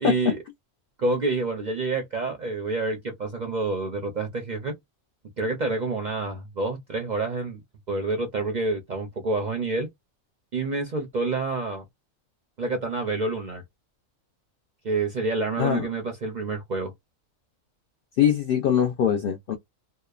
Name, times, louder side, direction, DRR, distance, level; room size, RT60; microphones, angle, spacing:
voice 1, 0.0-0.4 1.0-4.7 5.4-7.6 7.9-9.9 10.5-11.8 12.6-13.6 14.8-16.9, right 3 dB, 50° right, 0.5 m, -28 dB
voice 2, 15.6-15.9 18.2-19.5, left 9 dB, 65° left, 0.5 m, -22 dB
2.8 x 2.0 x 2.3 m
omnidirectional pair, 1.4 m